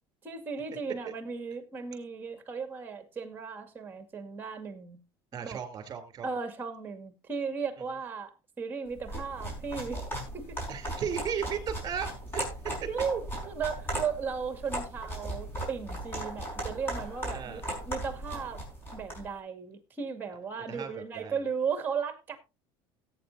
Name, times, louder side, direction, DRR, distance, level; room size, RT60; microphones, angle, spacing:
voice 1, 0.2-5.0 5.3-5.6 6.2-10.0 10.3-10.6 12.9-18.6 18.9-22.4, right 6 dB, 15° right, 2.2 m, -36 dB
voice 2, 5.3-6.3 10.7-12.4 17.3-17.6 20.7-21.4, right 7 dB, 35° right, 3.2 m, -36 dB
sound 1, 9.0-19.3, right 1 dB, 20° left, 5.3 m, -37 dB
17.5 x 8.6 x 2.7 m
cardioid pair, 140°, 11 cm